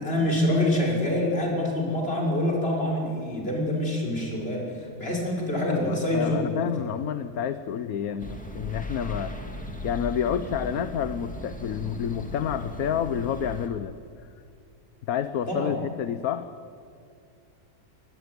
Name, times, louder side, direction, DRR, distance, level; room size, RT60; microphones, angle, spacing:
voice 1, 0.0-6.6 15.5-15.7, left 1 dB, 40° left, -2 dB, 6.0 m, -26 dB
voice 2, 5.7-9.3 9.8-14.3 15.1-16.5, left 9 dB, 70° left, 11 dB, 1.3 m, -29 dB
sound 1, 8.2-13.7, equal, 5° left, 2.8 m, -37 dB
24.5 x 20.5 x 9.6 m, 2.3 s
omnidirectional pair, 1.6 m